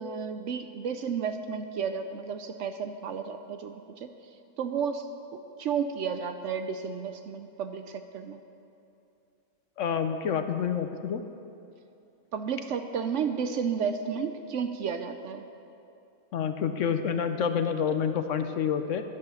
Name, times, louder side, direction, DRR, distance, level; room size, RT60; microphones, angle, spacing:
voice 1, 0.0-4.1 4.6-5.1 5.3-8.4 12.3-15.4, right 6 dB, 65° right, 8 dB, 0.8 m, -32 dB
voice 2, 9.8-11.2 16.3-19.0, left 7 dB, 65° left, 8 dB, 0.9 m, -28 dB
10.5 x 10.5 x 6.9 m, 2.7 s
omnidirectional pair, 1.5 m